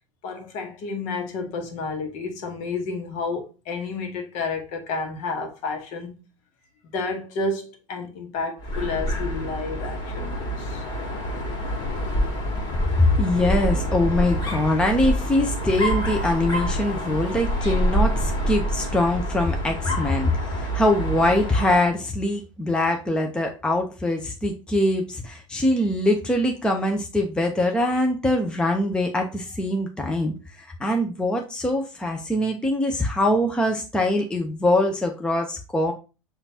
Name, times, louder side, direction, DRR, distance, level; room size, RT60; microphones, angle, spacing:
voice 1, 0.2-6.2 6.8-10.8, left 3 dB, 45° left, 1.2 m, -31 dB
Dog, 8.6-21.9, equal, 25° left, 2.0 m, -27 dB
voice 2, 12.9-35.9, left 1 dB, 5° left, 0.7 m, -23 dB
6.9 x 2.6 x 2.8 m
figure-of-eight pair, 85°, 17 cm